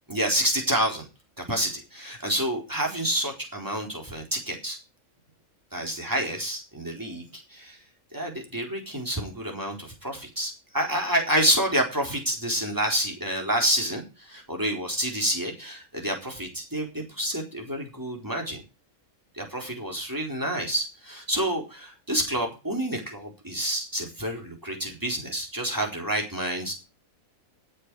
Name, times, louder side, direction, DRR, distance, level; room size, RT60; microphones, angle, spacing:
voice 1, 0.1-1.1 1.4-4.8 5.7-7.8 8.1-18.6 19.3-26.8, right 1 dB, 15° right, 1 dB, 4.1 m, -28 dB
18.5 x 7.7 x 4.8 m, 0.30 s
omnidirectional pair, 1.4 m